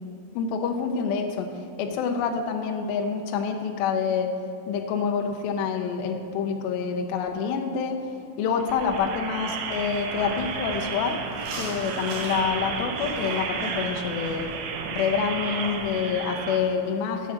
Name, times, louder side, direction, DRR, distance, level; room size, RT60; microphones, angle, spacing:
voice 1, 0.4-1.5 1.8-4.4 4.7-8.0 8.4-11.2 11.6-14.6 14.9-17.3, left 6 dB, 80° left, 3 dB, 2.1 m, -27 dB
sound 1, 8.6-16.6, right 5 dB, 85° right, 2.8 m, -32 dB
sound 2, 9.4-15.9, right 2 dB, 55° right, 2.9 m, -43 dB
8.5 x 4.5 x 7.1 m, 2.7 s
omnidirectional pair, 4.8 m